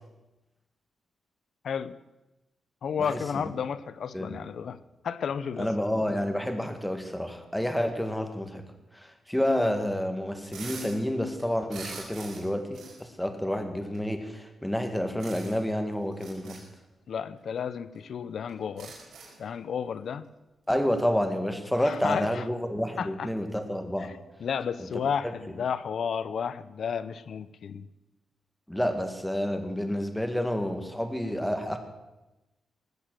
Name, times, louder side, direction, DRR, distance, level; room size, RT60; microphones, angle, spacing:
voice 1, 1.6-2.0 2.8-4.8 5.0-5.7 17.1-18.9 19.4-20.2 21.8-22.4 23.0-23.3 24.0-24.1 24.4-27.9, left 7 dB, 70° left, 15 dB, 0.7 m, -32 dB
voice 2, 3.0-3.4 4.1-4.4 5.6-8.6 8.9-16.6 20.7-24.1 24.8-25.3 28.7-31.8, equal, 5° left, 6 dB, 2.0 m, -29 dB
sound 1, 10.4-11.0 11.3-12.5 12.7-13.0 13.9-14.0 15.2-15.7 16.1-16.6 17.6-17.7 17.9-18.0 18.5-19.4, right 4 dB, 85° right, 5.5 m, -43 dB
19.0 x 8.1 x 7.7 m, 1.0 s
cardioid pair, 85°, 0 cm